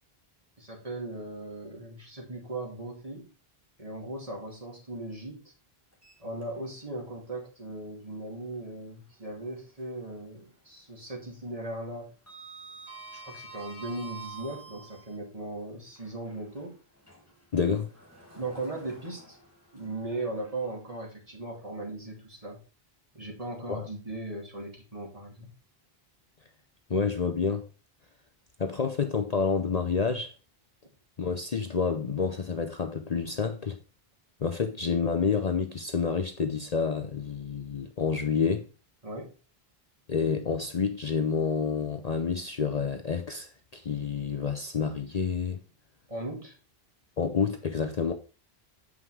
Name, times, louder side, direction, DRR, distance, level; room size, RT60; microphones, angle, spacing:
voice 1, 0.6-3.3 3.8-5.5 6.2-12.1 13.2-16.8 18.3-19.4 19.7-22.6 23.1-25.5 39.0-39.3 46.1-46.5, right 2 dB, 35° right, 2.6 m, -38 dB
Sliding door, 5.9-6.9 7.3-7.4 9.1-10.2 10.4-10.8 11.1-15.2 15.8-21.0, right 4 dB, 15° left, 2.2 m, -49 dB
voice 2, 17.5-17.9 23.7-23.9 26.9-27.6 28.6-30.3 31.2-33.8 34.4-38.6 40.1-45.6 47.2-48.1, left 5 dB, 45° left, 0.8 m, -28 dB
7.9 x 5.6 x 4.7 m
omnidirectional pair, 1.0 m